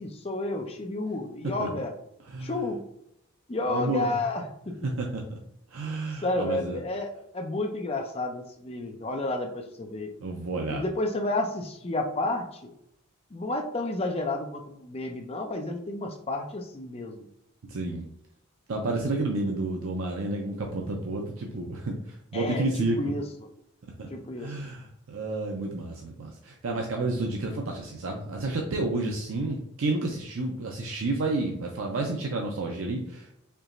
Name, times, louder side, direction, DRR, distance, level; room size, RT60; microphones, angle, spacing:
voice 1, 0.0-1.9 2.4-2.8 3.5-4.8 6.2-10.1 10.7-12.7 13.3-17.3 22.3-23.2 24.1-24.6, left 2 dB, 30° left, 4 dB, 0.5 m, -31 dB
voice 2, 2.3-2.6 3.7-4.1 4.8-5.4 5.7-6.8 10.2-10.8 17.7-18.1 18.7-23.0 24.0-24.1 24.4-33.4, right 2 dB, 75° right, 1 dB, 0.5 m, -30 dB
4.5 x 2.9 x 2.5 m, 0.77 s
head